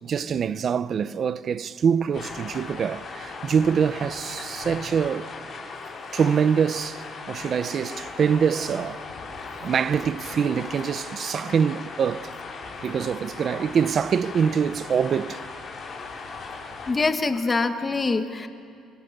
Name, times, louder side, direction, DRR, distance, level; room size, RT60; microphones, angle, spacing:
voice 1, 0.0-5.3 5.6-5.7 6.1-9.0 9.6-12.3 12.8-15.4, right 7 dB, 35° right, 0.5 m, -24 dB
sound 1, 2.1-16.9, left 4 dB, 40° left, 5.4 m, -38 dB
voice 2, 16.9-18.5, left 3 dB, 20° left, 1.3 m, -24 dB
29.5 x 25.0 x 6.6 m
cardioid pair, 165°, 0 cm